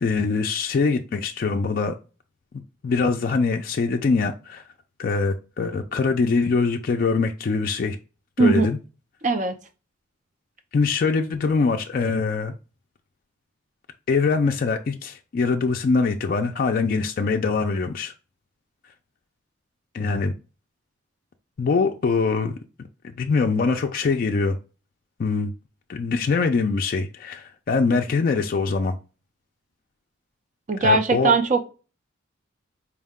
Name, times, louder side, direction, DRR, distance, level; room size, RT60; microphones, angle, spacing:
voice 1, 0.0-1.9 2.8-4.6 5.0-8.0 8.4-8.8 10.7-12.5 14.1-18.1 19.9-20.3 21.6-22.5 23.2-24.6 25.2-25.5 25.9-29.0 30.8-31.4, left 4 dB, 45° left, 0.3 m, -23 dB
voice 2, 9.2-9.5 30.7-31.7, right 3 dB, 35° right, 0.5 m, -19 dB
4.5 x 2.1 x 3.5 m
head